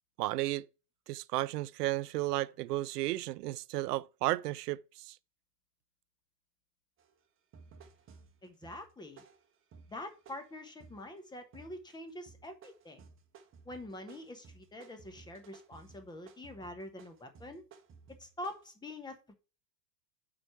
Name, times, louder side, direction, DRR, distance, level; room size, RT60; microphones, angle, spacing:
voice 1, 0.2-0.6 1.1-5.1, right 17 dB, 75° right, 0.6 m, -33 dB
sound 1, 7.0-7.1 7.5-11.1 11.5-12.0 12.3-18.6, right 5 dB, 25° right, 1.1 m, -57 dB
voice 2, 8.4-9.2 9.9-13.0 13.6-17.6 18.2-19.3, left 1 dB, 10° left, 1.1 m, -45 dB
6.1 x 4.9 x 5.7 m
hypercardioid pair, 110°, 49 cm